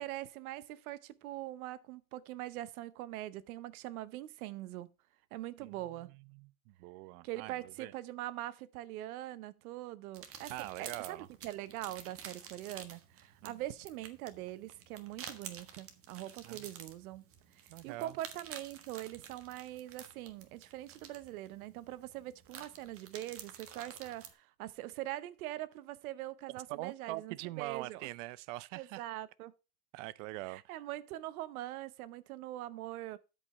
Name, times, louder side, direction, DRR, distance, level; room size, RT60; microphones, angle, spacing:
voice 1, 0.0-4.9 5.3-6.1 7.2-17.3 17.6-28.1 28.8-29.5 30.5-33.2, right 15 dB, 80° right, 1.0 m, -43 dB
voice 2, 6.0-7.9 10.5-11.3 13.4-13.6 16.4-16.7 17.7-18.2 26.7-29.0 29.9-30.8, right 19 dB, 60° right, 0.6 m, -43 dB
sound 1, 10.1-24.3, right 8 dB, 30° right, 1.5 m, -51 dB
12.0 x 5.3 x 4.3 m
supercardioid pair, 130°, 43 cm